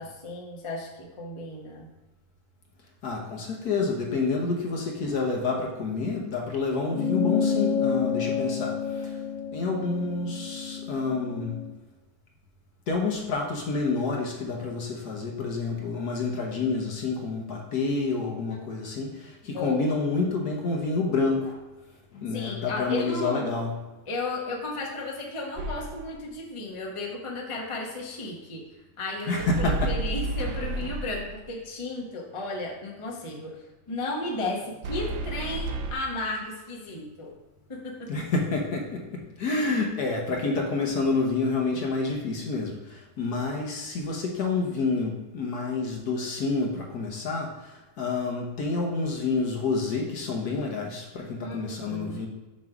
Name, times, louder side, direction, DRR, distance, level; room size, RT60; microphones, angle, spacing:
voice 1, 0.0-1.9 18.5-18.6 19.5-19.9 22.3-23.5 24.1-28.6 29.0-37.3 37.7-38.2 51.4-52.3, left 2 dB, 30° left, -2 dB, 0.5 m, -34 dB
voice 2, 3.0-9.2 9.5-11.6 12.9-21.6 22.1-23.7 29.3-29.9 38.1-52.3, left 3 dB, 55° left, 0 dB, 1.2 m, -28 dB
sound 1, 6.9-11.7, left 7 dB, 75° left, 0.7 m, -29 dB
sound 2, 25.6-26.2 29.4-31.5 34.8-35.9, right 2 dB, 70° right, 1.2 m, -31 dB
7.2 x 3.1 x 5.9 m, 1.1 s
omnidirectional pair, 2.3 m